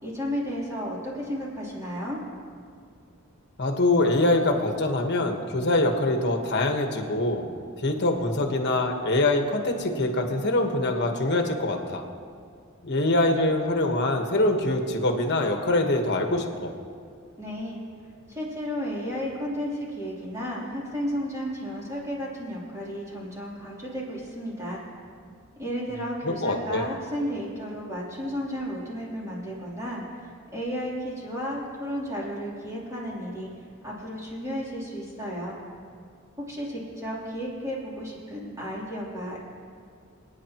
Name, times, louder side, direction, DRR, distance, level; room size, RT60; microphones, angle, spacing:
voice 1, 0.0-2.2 17.4-17.8 18.3-24.8 25.6-33.5 33.8-35.6 36.4-39.4, equal, 15° right, -6 dB, 3.2 m, -33 dB
voice 2, 3.6-7.5 7.8-12.0 12.8-16.7 26.2-26.9, left 2 dB, 55° left, 4 dB, 1.3 m, -24 dB
28.0 x 9.6 x 3.0 m, 2.2 s
head